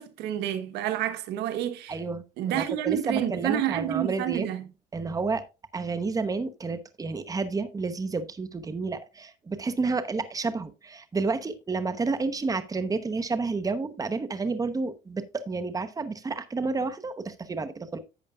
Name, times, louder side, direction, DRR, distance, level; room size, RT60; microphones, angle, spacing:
voice 1, 0.0-2.0 2.4-4.7, right 11 dB, 85° right, 1.2 m, -29 dB
voice 2, 1.9-4.5 4.9-5.4 5.7-18.0, right 4 dB, 20° right, 1.0 m, -30 dB
11.0 x 8.2 x 2.4 m
cardioid pair, 110°, 17 cm